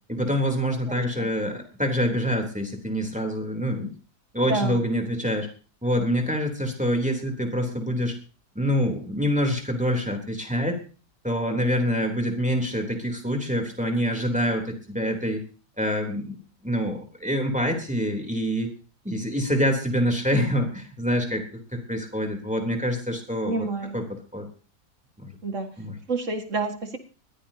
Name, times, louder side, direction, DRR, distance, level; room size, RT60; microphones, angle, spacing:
voice 1, 0.1-3.9 4.3-5.5 5.8-8.2 8.6-10.8 11.2-15.4 15.8-16.4 16.6-18.7 19.1-21.4 21.7-23.7 23.9-24.0 24.3-24.5 25.2-25.3 25.8-25.9, equal, 5° right, 2 dB, 3.4 m, -26 dB
voice 2, 0.9-1.3 4.5-4.8 23.4-24.0 25.4-25.7 26.1-27.0, right 3 dB, 50° right, 5 dB, 2.3 m, -29 dB
21.0 x 15.0 x 2.9 m, 0.38 s
omnidirectional pair, 1.7 m